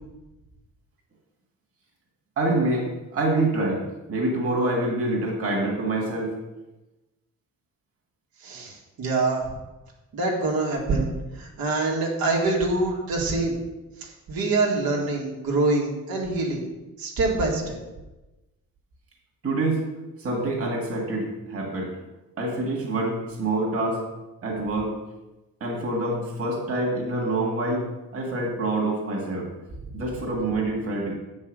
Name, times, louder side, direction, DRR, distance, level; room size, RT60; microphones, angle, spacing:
voice 1, 2.4-6.3 19.4-19.8 20.2-21.9 22.4-24.0 24.4-24.9 25.6-27.9 28.1-29.5 29.9-31.2, right 2 dB, 40° right, -2 dB, 1.9 m, -26 dB
voice 2, 8.4-9.5 10.1-11.1 11.3-13.6 14.0-16.6 17.0-17.8, right 3 dB, 85° right, -2 dB, 2.2 m, -25 dB
7.8 x 5.5 x 6.5 m, 1.0 s
wide cardioid pair, 165°, 35 cm